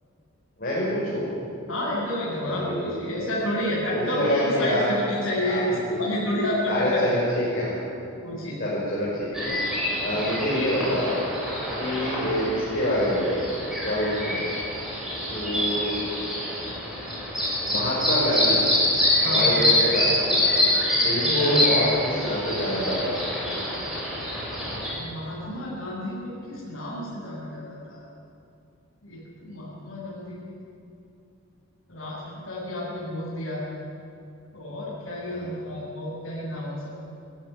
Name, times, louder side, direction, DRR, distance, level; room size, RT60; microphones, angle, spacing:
voice 1, 0.6-1.3 2.4-3.3 3.9-4.9 5.4-6.0 6.6-7.8 8.6-9.6 10.0-11.1 11.8-13.4 13.8-14.5 15.3-16.0 17.7-18.6 19.3-20.5 21.0-23.1 35.3-35.5, equal, 45° left, -8 dB, 6.4 m, -26 dB
voice 2, 1.7-7.0 8.2-8.6 10.0-10.2 19.2-19.6 21.2-21.6 25.0-28.0 29.0-30.5 31.9-33.6 34.5-37.0, left 1 dB, 60° left, -10 dB, 7.3 m, -30 dB
sound 1, 9.3-24.9, left 1 dB, ahead, 7.0 m, -26 dB
22.0 x 15.5 x 10.0 m, 2.8 s
head